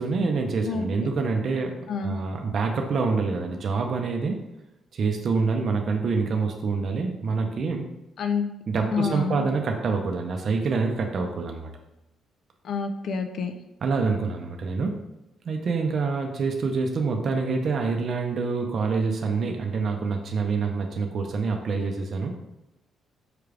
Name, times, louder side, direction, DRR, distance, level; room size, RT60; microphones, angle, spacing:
voice 1, 0.0-4.4 4.9-7.9 8.7-11.7 13.8-15.1 15.4-22.4, right 4 dB, 55° right, 3 dB, 0.5 m, -26 dB
voice 2, 8.9-9.5 12.6-13.5, left 5 dB, 65° left, 7 dB, 0.5 m, -27 dB
4.8 x 2.3 x 3.3 m, 0.94 s
cardioid pair, 90°, 0 cm